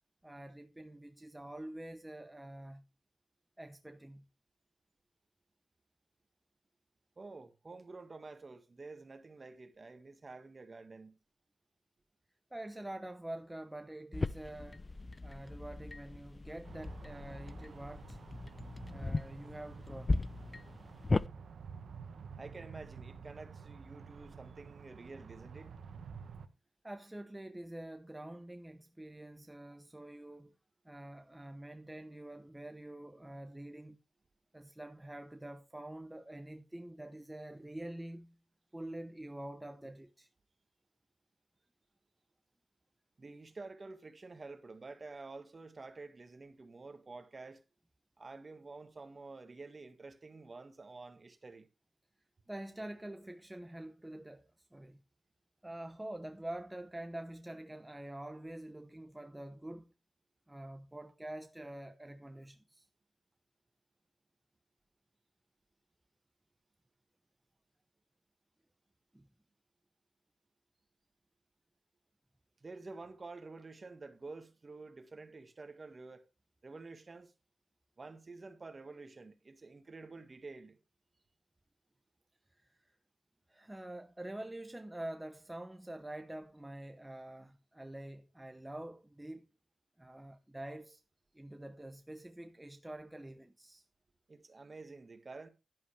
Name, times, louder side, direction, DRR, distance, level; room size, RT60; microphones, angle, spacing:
voice 1, 0.2-2.8 3.6-4.2 12.5-14.9 15.2-18.2 18.9-20.2 26.8-30.5 30.8-34.0 34.5-38.4 38.7-40.3 52.5-55.0 55.6-59.9 60.5-62.9 69.1-69.3 82.6-82.7 83.5-89.5 90.0-91.0 91.3-93.8, right 1 dB, 15° right, 0.9 m, -46 dB
voice 2, 7.2-11.2 22.4-25.7 43.2-47.6 48.2-51.7 72.6-76.2 76.6-77.3 78.0-80.8 94.3-95.5, right 3 dB, 40° right, 1.8 m, -49 dB
sound 1, 14.1-21.3, left 2 dB, 35° left, 0.5 m, -37 dB
sound 2, 16.6-26.5, right 6 dB, 90° right, 1.0 m, -51 dB
11.5 x 10.5 x 3.3 m
cardioid pair, 75°, 0 cm